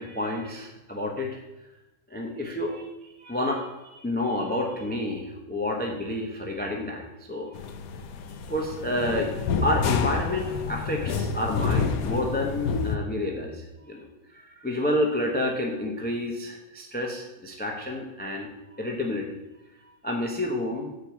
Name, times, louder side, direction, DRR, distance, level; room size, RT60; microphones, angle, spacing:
voice 1, 0.0-1.4 2.1-2.9 3.2-7.6 8.5-18.5 18.8-19.4 20.0-20.9, left 1 dB, 10° left, 0 dB, 0.5 m, -29 dB
sound 1, 7.5-13.0, left 5 dB, 70° left, 1.1 m, -28 dB
7.3 x 5.2 x 5.8 m, 1.0 s
omnidirectional pair, 1.7 m